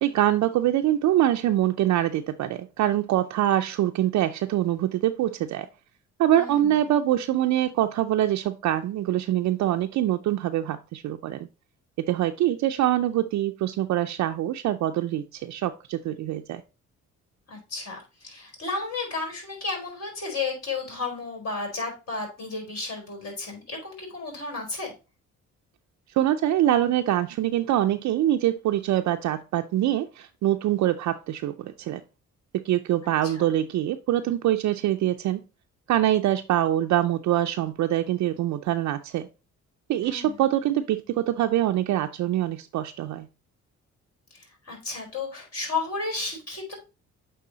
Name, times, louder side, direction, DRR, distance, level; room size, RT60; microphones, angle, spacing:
voice 1, 0.0-5.7 6.2-11.5 12.0-16.6 26.2-32.0 32.6-35.4 35.9-39.3 39.9-43.3, right 12 dB, 70° right, 0.5 m, -24 dB
voice 2, 6.3-6.8 17.5-24.9 33.3-33.4 40.0-40.4 44.3-46.7, left 3 dB, 55° left, 4.3 m, -33 dB
8.5 x 3.5 x 3.9 m
cardioid pair, 90°, 30 cm